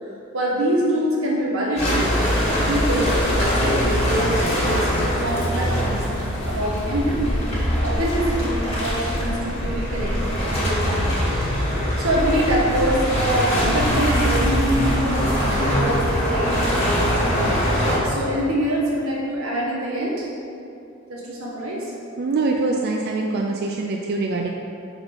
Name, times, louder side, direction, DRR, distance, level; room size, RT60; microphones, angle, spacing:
voice 1, 0.0-7.5 7.8-11.1 12.0-17.6 18.0-20.3 21.1-21.9, right 1 dB, 90° right, -5 dB, 1.4 m, -25 dB
sound 1, 1.8-18.0, equal, 30° left, 1.5 m, -22 dB
voice 2, 22.2-24.5, right 3 dB, 50° right, 0 dB, 0.4 m, -24 dB
4.6 x 4.0 x 5.3 m, 2.6 s
head